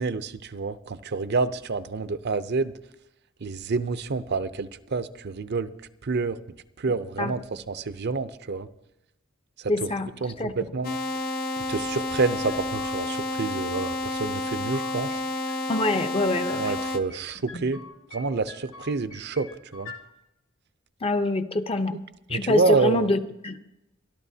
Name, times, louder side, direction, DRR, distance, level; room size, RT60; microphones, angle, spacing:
voice 1, 0.0-2.7 3.4-5.7 6.0-6.4 6.8-8.7 9.6-9.9 10.2-11.0 11.6-15.1 16.5-19.9 21.9-22.0 22.3-23.1, right 4 dB, 50° right, 0.6 m, -28 dB
voice 2, 9.7-10.1 10.4-10.5 15.7-16.7 17.5-17.7 21.0-22.0 22.3-23.6, left 2 dB, 25° left, 0.7 m, -25 dB
sound 1, 10.8-17.0, left 2 dB, 45° left, 0.9 m, -30 dB
sound 2, 12.2-13.2 13.5-14.2 14.5-15.9 16.2-17.2 17.5-18.2 18.5-20.0, left 3 dB, 70° left, 2.0 m, -45 dB
25.0 x 12.0 x 2.8 m
head